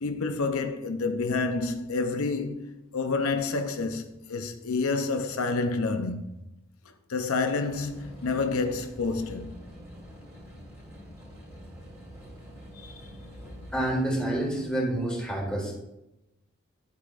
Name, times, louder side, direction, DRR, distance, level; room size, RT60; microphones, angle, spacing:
voice 1, 0.0-6.4 7.1-9.6 12.8-13.0 13.4-13.6, left 3 dB, 85° left, 0.7 m, -29 dB
sound 1, 7.6-14.7, equal, 15° right, 2.7 m, -47 dB
voice 2, 13.7-15.8, right 1 dB, 5° left, 1.7 m, -28 dB
10.5 x 8.2 x 2.5 m
head